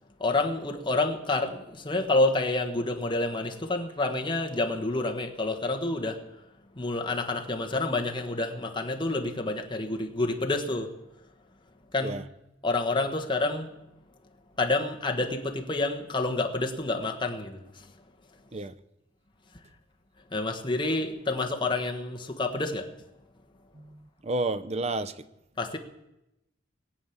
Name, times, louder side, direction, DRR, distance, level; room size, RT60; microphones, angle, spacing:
voice 1, 0.2-6.3 6.7-11.0 11.9-12.2 12.6-13.7 14.6-17.9 20.3-22.9 25.6-25.8, left 2 dB, 25° left, 1.4 m, -28 dB
voice 2, 23.7-25.3, right 2 dB, 35° right, 0.7 m, -31 dB
20.5 x 8.4 x 7.3 m
head